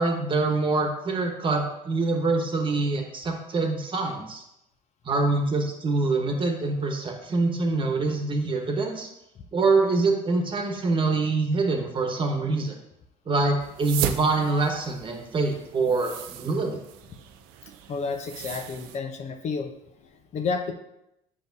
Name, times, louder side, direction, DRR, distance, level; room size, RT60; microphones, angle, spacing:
voice 1, 0.0-4.4 5.0-9.1 9.5-12.8 13.3-16.8, right 3 dB, 35° right, 3 dB, 1.2 m, -25 dB
sound 1, 13.6-19.0, right 11 dB, 80° right, 0.5 m, -37 dB
voice 2, 17.9-19.7 20.0-20.7, left 5 dB, 50° left, 5 dB, 0.7 m, -31 dB
7.2 x 5.2 x 2.7 m, 0.84 s
supercardioid pair, 85°, 15 cm